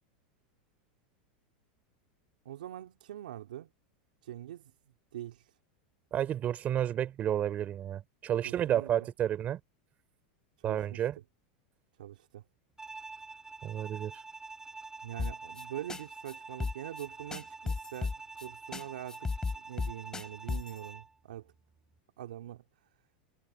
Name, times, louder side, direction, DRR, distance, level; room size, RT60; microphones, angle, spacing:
voice 1, 2.5-3.7 4.2-4.7 5.1-5.5 8.4-9.1 10.6-11.1 12.0-12.4 15.0-19.3 19.6-21.5 22.2-22.6, right 12 dB, 90° right, 3.7 m, -43 dB
voice 2, 6.1-9.6 10.6-11.2 13.6-14.1, right 10 dB, 35° right, 3.2 m, -31 dB
Bowed string instrument, 12.8-21.1, right 3 dB, 10° right, 5.0 m, -47 dB
sound 1, 15.2-15.6 15.9-16.3 16.6-17.1 17.3-18.5 18.7-18.8 19.1-20.8, left 4 dB, 15° left, 4.4 m, -34 dB
supercardioid pair, 125°, 5 cm